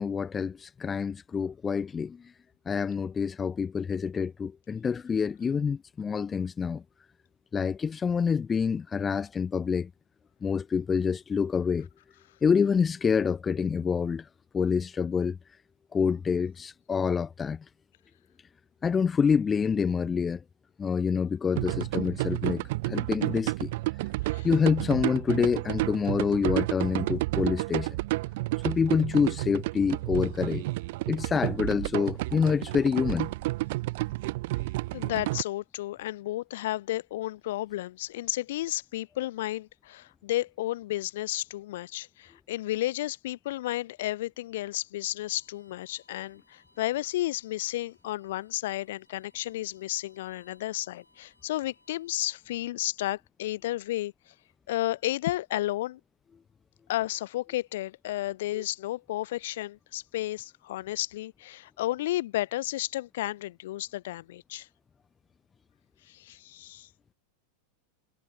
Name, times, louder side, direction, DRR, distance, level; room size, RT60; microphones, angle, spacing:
voice 1, 0.0-2.2 2.7-6.8 7.5-9.9 10.4-11.9 12.4-14.2 14.5-15.4 15.9-17.6 18.8-20.4 20.8-23.7 24.4-28.0 28.6-30.6 31.1-33.3 58.5-58.6, left 6 dB, 20° left, 0.3 m, -27 dB
sound 1, 21.6-35.4, right 20 dB, 50° right, 0.7 m, -31 dB
voice 2, 34.9-54.1 54.7-56.0 56.9-64.7 66.1-66.9, left 15 dB, 55° left, 0.7 m, -32 dB
Bowed string instrument, 45.2-52.4, left 1 dB, 85° left, 7.2 m, -66 dB
figure-of-eight pair, 90°, 0 cm